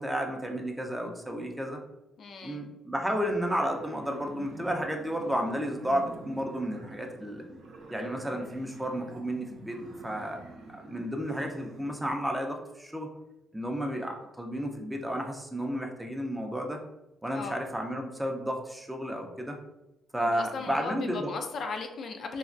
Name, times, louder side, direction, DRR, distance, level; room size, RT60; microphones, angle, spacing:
voice 1, 0.0-1.8 2.4-7.4 7.9-10.4 10.7-13.1 13.5-16.8 17.2-19.6 20.1-21.3, equal, 5° right, 2 dB, 0.4 m, -32 dB
voice 2, 2.2-2.7 17.3-17.6 20.2-22.4, left 4 dB, 60° left, 4 dB, 0.4 m, -37 dB
sound 1, 3.6-12.1, right 2 dB, 70° right, 0.6 m, -47 dB
3.3 x 2.2 x 2.4 m, 0.95 s
cardioid pair, 90°, 0 cm